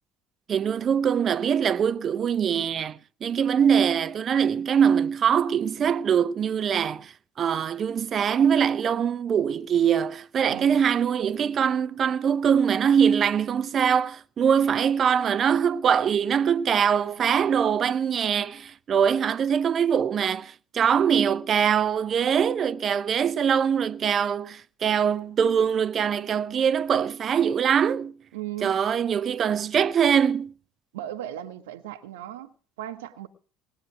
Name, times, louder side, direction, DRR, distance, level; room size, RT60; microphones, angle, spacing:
voice 1, 0.5-7.1 7.4-28.1 28.6-30.5, right 8 dB, 45° right, 0.6 m, -23 dB
voice 2, 10.5-10.8 28.3-28.8 30.9-33.3, right 12 dB, 75° right, 1.0 m, -37 dB
19.5 x 9.0 x 6.0 m
figure-of-eight pair, 60°, 0 cm